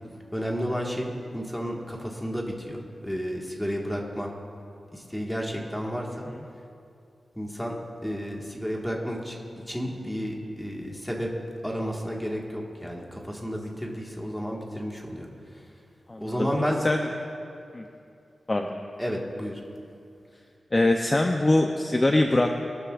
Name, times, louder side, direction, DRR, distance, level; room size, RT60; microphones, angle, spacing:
voice 1, 0.3-2.8 3.0-4.3 4.9-6.3 7.3-7.7 8.0-9.4 9.7-11.3 11.6-15.3 16.2-16.8 19.0-19.6, equal, 5° left, -2 dB, 1.6 m, -31 dB
voice 2, 16.1-16.5 16.8-17.1 17.7-17.8 18.5-18.7 20.7-22.5, left 2 dB, 25° left, 3 dB, 0.6 m, -23 dB
22.5 x 12.5 x 2.5 m, 2.6 s
wide cardioid pair, 145°, 0 cm